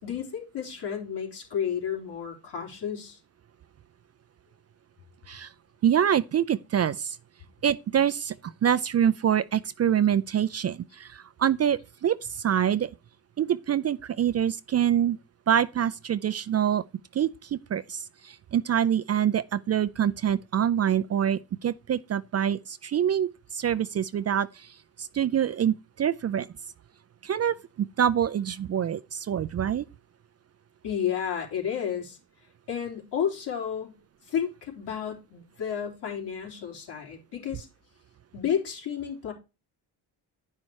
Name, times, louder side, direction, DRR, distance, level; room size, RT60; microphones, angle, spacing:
voice 1, 0.0-3.2 30.8-32.2 32.7-34.0 34.3-37.7 38.3-39.3, left 8 dB, 70° left, 3.6 m, -31 dB
voice 2, 5.8-7.2 7.6-8.4 8.6-12.9 13.4-15.2 15.5-16.8 17.1-24.7 25.0-26.5 27.2-27.6 28.0-29.8, right 9 dB, 35° right, 0.4 m, -25 dB
9.5 x 5.5 x 4.7 m
cardioid pair, 75°, 44 cm